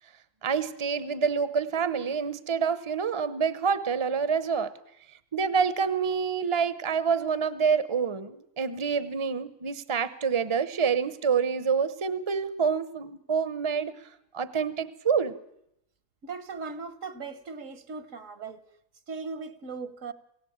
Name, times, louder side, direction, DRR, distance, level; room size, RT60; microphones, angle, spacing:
voice 1, 0.4-4.7 5.3-13.9 14.3-15.3, right 6 dB, 25° right, 0.9 m, -27 dB
voice 2, 16.2-18.6 19.1-20.1, right 4 dB, 70° right, 1.7 m, -38 dB
28.5 x 16.5 x 8.7 m
omnidirectional pair, 1.4 m